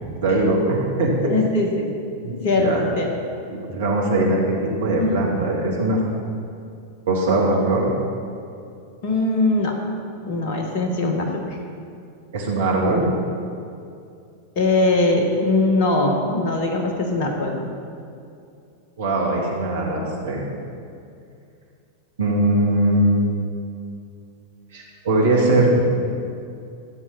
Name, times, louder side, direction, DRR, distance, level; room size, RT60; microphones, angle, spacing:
voice 1, 0.2-1.3 2.2-2.8 3.5-6.0 7.1-7.9 12.3-13.0 19.0-20.4 22.2-23.3 24.7-25.8, right 2 dB, 60° right, -2 dB, 2.2 m, -20 dB
voice 2, 1.2-1.9 2.3-3.1 5.0-5.2 9.0-9.8 10.3-11.6 14.5-17.7, left 2 dB, 45° left, 2 dB, 1.4 m, -21 dB
15.0 x 7.5 x 4.2 m, 2.5 s
figure-of-eight pair, 90°, 0 cm